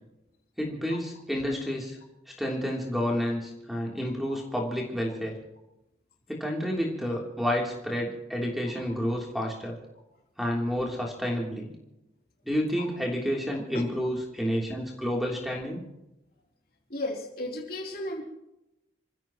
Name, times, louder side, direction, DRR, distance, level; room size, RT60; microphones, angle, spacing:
voice 1, 0.6-2.0 2.3-5.4 6.3-9.8 10.4-11.7 12.4-15.9, equal, ahead, -1 dB, 3.2 m, -30 dB
voice 2, 16.9-18.2, left 1 dB, 50° left, 0 dB, 3.5 m, -34 dB
28.5 x 15.5 x 3.1 m, 0.90 s
head